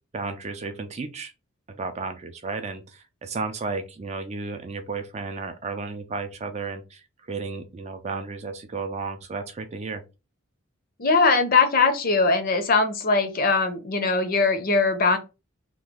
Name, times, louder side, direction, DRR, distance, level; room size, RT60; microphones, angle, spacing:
voice 1, 0.1-1.3 1.7-10.0, right 4 dB, 30° right, 0.4 m, -33 dB
voice 2, 11.0-15.2, left 4 dB, 40° left, 0.6 m, -21 dB
2.9 x 2.3 x 3.4 m
head